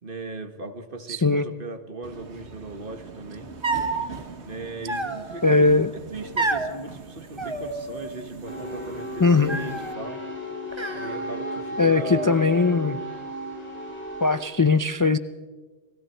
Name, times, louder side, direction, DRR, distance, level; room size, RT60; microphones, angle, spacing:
voice 1, 0.0-3.5 4.4-5.7 6.1-10.2 10.9-12.2, right 2 dB, 55° right, 7 dB, 1.8 m, -38 dB
voice 2, 1.1-1.5 5.4-5.9 9.2-9.6 11.8-13.0 14.2-15.2, left 3 dB, 30° left, 11 dB, 0.4 m, -20 dB
Subway metro underground, 2.0-9.9, right 4 dB, 85° right, 1.7 m, -42 dB
sound 1, 3.6-4.1 4.9-5.5 6.4-6.7 7.4-8.2 8.5-9.0 9.5-10.0 10.7-11.6 11.9-12.7, right 3 dB, 25° right, 1.4 m, -30 dB
sound 2, 8.4-14.4, equal, 10° left, 5.7 m, -34 dB
30.0 x 20.0 x 4.5 m, 1.3 s
omnidirectional pair, 1.1 m